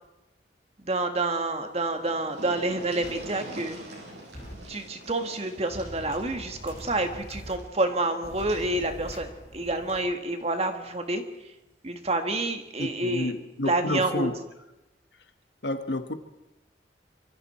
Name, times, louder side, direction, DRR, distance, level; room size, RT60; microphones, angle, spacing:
voice 1, 0.8-3.8 4.7-11.6 11.8-13.3 13.6-14.3, right 2 dB, 35° right, 1.8 m, -28 dB
sound 1, 1.6-1.7 1.9-8.7 10.0-10.1 10.5-10.6, right 1 dB, 75° right, 6.7 m, -45 dB
sound 2, 3.0-3.1 4.3-4.5 5.7-7.5 8.2-10.0, equal, 30° left, 5.5 m, -43 dB
voice 2, 12.8-14.4 15.6-16.1, left 1 dB, 75° left, 1.5 m, -30 dB
25.0 x 24.5 x 4.4 m
head